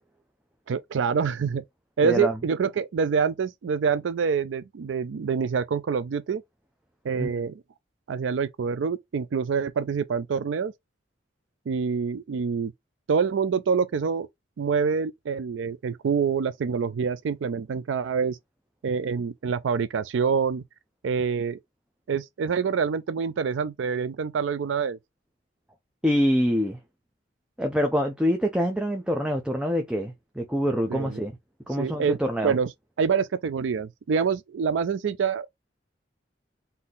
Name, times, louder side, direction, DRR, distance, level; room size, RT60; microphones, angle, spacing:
voice 1, 0.7-1.6 2.0-6.4 7.0-7.6 8.1-10.7 11.7-12.7 13.1-14.3 14.6-18.4 18.8-20.6 21.0-21.6 22.1-25.0 30.9-31.2 31.8-32.2 32.4-32.7 33.0-35.5, right 6 dB, 85° right, 0.4 m, -26 dB
voice 2, 26.0-26.8 27.6-31.3 31.7-32.5, equal, 5° right, 0.5 m, -25 dB
3.8 x 2.7 x 3.9 m
head